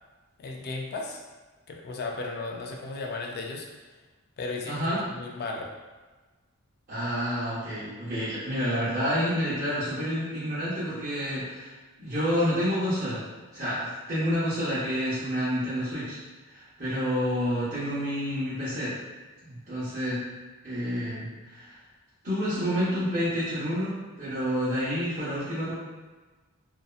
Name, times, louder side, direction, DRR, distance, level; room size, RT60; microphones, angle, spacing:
voice 1, 0.4-1.2 1.7-3.7 4.4-5.7, left 3 dB, 45° left, 0 dB, 0.3 m, -35 dB
voice 2, 4.6-5.0 6.9-11.7 12.0-13.2 13.5-16.2 16.5-18.9 19.4-20.2 20.6-21.7 22.2-25.7, equal, 35° right, -13 dB, 0.8 m, -29 dB
2.7 x 2.2 x 2.4 m, 1.3 s
head